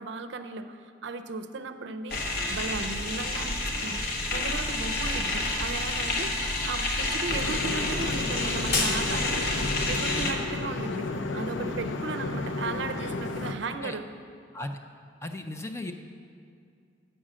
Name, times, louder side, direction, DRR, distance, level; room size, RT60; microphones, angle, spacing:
voice 1, 0.0-2.2 2.5-4.0 4.3-9.5 9.9-11.1 11.3-14.0, right 3 dB, 65° right, 9 dB, 0.5 m, -36 dB
sound 1, 2.1-10.3, left 2 dB, 50° left, 1.1 m, -29 dB
sound 2, 7.3-13.5, left 3 dB, 70° left, 0.6 m, -33 dB
voice 2, 15.2-15.9, left 1 dB, 15° left, 6 dB, 0.4 m, -36 dB
8.9 x 6.2 x 7.4 m, 2.4 s
head